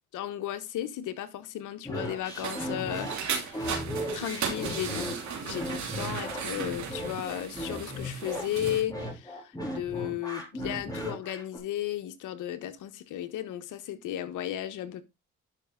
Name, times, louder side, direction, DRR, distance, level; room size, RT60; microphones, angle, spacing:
voice 1, 0.1-3.8 4.1-5.1 5.4-15.0, left 12 dB, 85° left, 1.3 m, -35 dB
sound 1, 1.8-11.6, equal, 10° left, 3.7 m, -36 dB
sound 2, 2.0-8.8, right 6 dB, 65° right, 2.8 m, -36 dB
11.5 x 5.3 x 3.8 m
cardioid pair, 90°, 30 cm